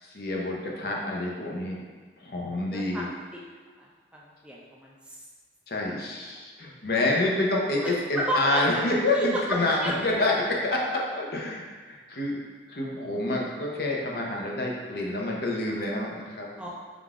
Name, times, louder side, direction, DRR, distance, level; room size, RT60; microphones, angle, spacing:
voice 1, 0.0-1.8 2.2-3.1 5.7-12.4 12.7-16.7, left 2 dB, 60° left, -2 dB, 0.6 m, -28 dB
voice 2, 2.7-3.1 3.8-3.9 4.1-4.9 7.8-8.8 9.1-9.9 16.6-16.7, equal, 5° right, -4 dB, 0.4 m, -31 dB
3.7 x 2.5 x 4.6 m, 1.4 s
head